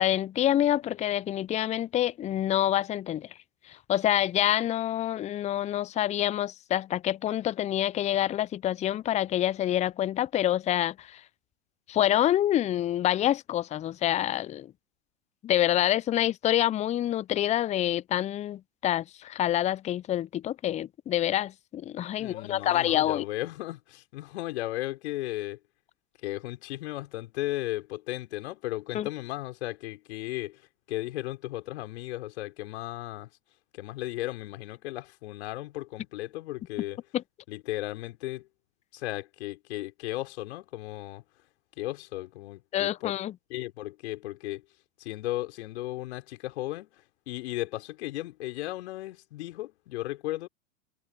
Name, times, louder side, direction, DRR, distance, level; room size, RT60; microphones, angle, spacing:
voice 1, 0.0-3.3 3.9-11.2 11.9-14.7 15.4-23.2 28.9-29.1 37.1-37.2 42.7-43.3, left 12 dB, 20° left, 0.6 m, -27 dB
voice 2, 22.2-25.6 26.2-30.6 30.9-33.3 33.7-37.0 37.5-38.5 38.9-41.2 41.8-43.2 43.5-44.6 45.0-50.5, left 17 dB, 60° left, 4.9 m, -35 dB
figure-of-eight pair, 100°, 38 cm